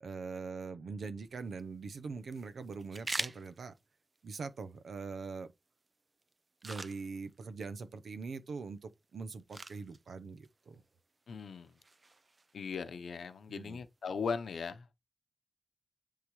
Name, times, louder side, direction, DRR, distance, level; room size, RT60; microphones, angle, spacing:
voice 1, 0.0-3.7 4.2-5.5 6.6-10.8 13.5-13.8, right 4 dB, 80° right, 0.9 m, -42 dB
sound 1, 1.2-14.3, right 3 dB, 35° right, 0.4 m, -48 dB
voice 2, 11.3-11.8 12.5-14.9, left 5 dB, 85° left, 0.9 m, -38 dB
10.0 x 3.9 x 3.2 m
wide cardioid pair, 80°, 0 cm